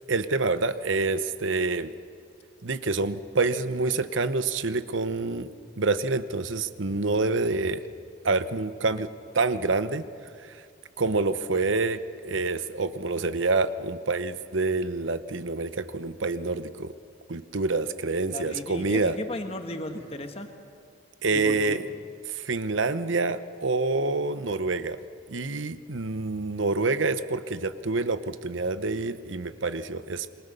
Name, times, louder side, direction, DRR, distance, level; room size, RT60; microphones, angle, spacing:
voice 1, 0.1-1.9 2.6-5.5 5.8-7.9 8.2-9.1 9.3-10.1 10.4-10.6 11.0-16.9 17.3-19.2 21.2-21.9 22.3-25.0 25.3-30.3, right 3 dB, 70° right, 13 dB, 0.9 m, -27 dB
voice 2, 18.2-20.5 21.3-21.8, left 1 dB, 30° left, 6 dB, 1.6 m, -35 dB
27.5 x 22.5 x 6.8 m, 2.3 s
head